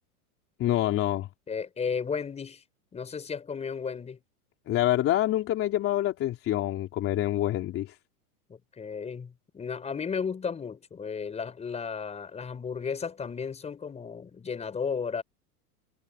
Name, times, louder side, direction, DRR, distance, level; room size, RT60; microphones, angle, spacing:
voice 1, 0.6-1.3 4.7-7.9, left 14 dB, 30° left, 3.3 m, -26 dB
voice 2, 1.5-2.6 2.9-4.2 8.5-15.2, left 6 dB, 15° left, 5.3 m, -34 dB
supercardioid pair, 140°, 45 cm